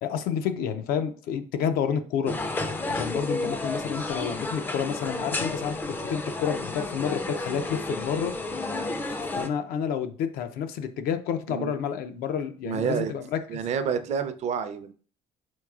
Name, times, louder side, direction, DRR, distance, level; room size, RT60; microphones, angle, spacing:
voice 1, 0.0-2.4 2.9-8.3 9.3-13.4, left 7 dB, 85° left, 9 dB, 0.5 m, -29 dB
sound 1, 2.3-9.5, left 2 dB, 15° left, 0.3 m, -31 dB
voice 2, 12.6-13.1 13.5-14.9, right 7 dB, 50° right, 10 dB, 0.5 m, -29 dB
4.6 x 4.5 x 2.3 m, 0.42 s
cardioid pair, 140°, 15 cm